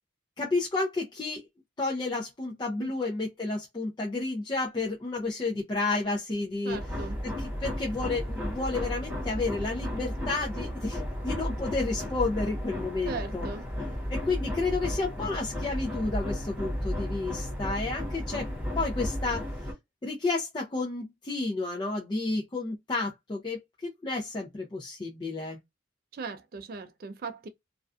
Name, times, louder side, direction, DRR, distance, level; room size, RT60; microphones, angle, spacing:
voice 1, 0.4-1.4 1.8-6.8 7.2-13.5 14.1-18.5 18.8-19.5 20.0-25.6, left 3 dB, 25° left, 0.4 m, -31 dB
voice 2, 6.6-7.2 13.0-13.7 26.1-27.5, right 4 dB, 50° right, 0.3 m, -38 dB
sound 1, 6.7-19.7, equal, 10° right, 0.9 m, -33 dB
2.4 x 2.2 x 2.3 m
head